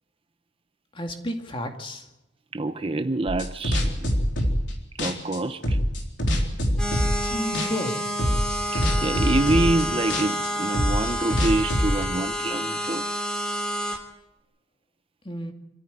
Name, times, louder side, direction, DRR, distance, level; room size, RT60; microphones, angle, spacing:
voice 1, 0.9-2.1 7.3-8.0 15.2-15.5, equal, 25° left, 2.3 m, -31 dB
voice 2, 2.5-4.1 5.0-5.8 7.5-7.7 8.7-13.1, right 2 dB, 30° right, 0.8 m, -26 dB
sound 1, 3.3-4.7 5.0-7.3 7.5-7.9 8.2-12.0, equal, 70° left, 4.0 m, -24 dB
sound 2, 6.8-14.0, equal, 5° left, 3.0 m, -29 dB
26.0 x 14.0 x 9.6 m
head